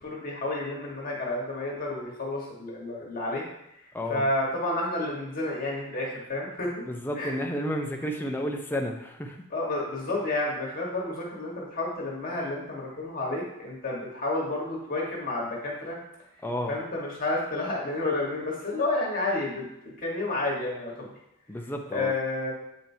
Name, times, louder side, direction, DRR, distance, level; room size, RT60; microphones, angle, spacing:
voice 1, 0.0-3.4 4.1-6.7 7.2-7.3 9.5-16.0 16.7-21.1 21.9-22.5, left 2 dB, 40° left, -3 dB, 1.4 m, -30 dB
voice 2, 6.8-9.4 16.4-16.7 21.5-22.1, equal, 10° left, 1 dB, 0.6 m, -31 dB
8.6 x 4.6 x 2.7 m, 0.82 s
head